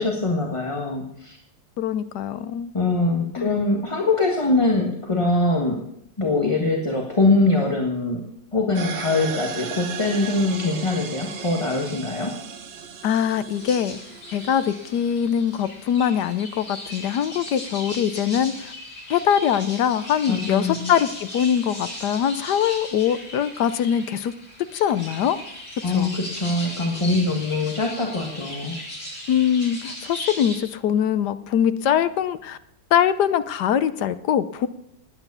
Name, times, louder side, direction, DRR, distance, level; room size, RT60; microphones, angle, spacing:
voice 1, 0.0-1.4 2.7-5.8 6.2-8.2 8.5-12.4 20.3-20.8 25.8-28.8, left 2 dB, 15° left, 0 dB, 1.3 m, -23 dB
voice 2, 1.8-2.7 3.4-3.5 13.0-14.0 14.3-18.7 19.1-24.3 24.7-25.4 25.9-26.1 29.3-32.6 32.9-34.7, left 9 dB, 65° left, 13 dB, 1.1 m, -22 dB
sound 1, 8.7-15.3, right 7 dB, 60° right, 0.7 m, -36 dB
sound 2, 13.5-30.6, left 1 dB, 80° left, 8.3 m, -37 dB
19.0 x 9.4 x 6.9 m, 0.78 s
omnidirectional pair, 2.2 m